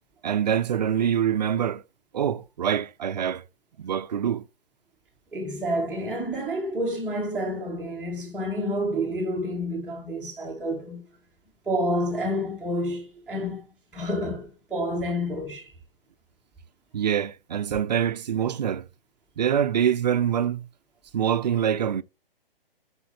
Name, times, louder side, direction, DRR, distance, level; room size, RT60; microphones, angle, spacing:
voice 1, 0.2-1.8 2.1-3.4 3.8-4.4 16.9-18.9 19.4-20.7 21.1-22.0, right 9 dB, 50° right, 0.4 m, -25 dB
voice 2, 5.3-11.0 11.7-13.7 13.9-15.7, equal, 5° right, 0.6 m, -29 dB
6.1 x 5.1 x 3.0 m
figure-of-eight pair, 135°, 29 cm